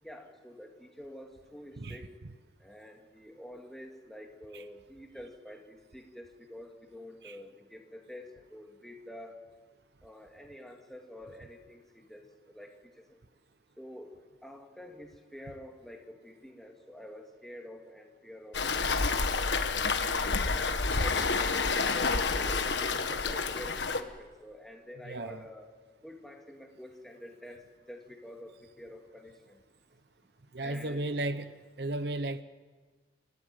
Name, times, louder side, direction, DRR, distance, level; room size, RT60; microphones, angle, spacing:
voice 1, 0.0-2.1 2.6-9.4 10.0-13.2 13.8-19.5 20.0-25.7 26.0-29.6 30.6-31.0, left 1 dB, ahead, 1 dB, 2.3 m, -48 dB
Waves surf, 18.5-24.0, left 4 dB, 85° left, 1.4 m, -29 dB
voice 2, 25.0-25.5 30.5-31.5 31.8-32.4, right 2 dB, 70° right, 12 dB, 0.9 m, -34 dB
28.5 x 13.5 x 9.2 m, 1.4 s
head